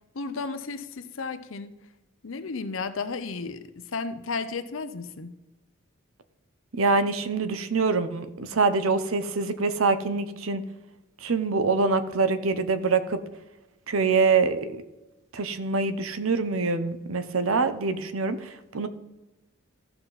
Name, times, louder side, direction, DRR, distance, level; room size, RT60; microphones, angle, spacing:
voice 1, 0.1-1.8 2.2-5.3, left 4 dB, 65° left, 11 dB, 0.7 m, -33 dB
voice 2, 6.8-10.6 11.2-13.2 13.9-14.8 15.3-18.9, right 4 dB, 70° right, 11 dB, 0.8 m, -25 dB
14.5 x 5.7 x 4.1 m, 1.0 s
head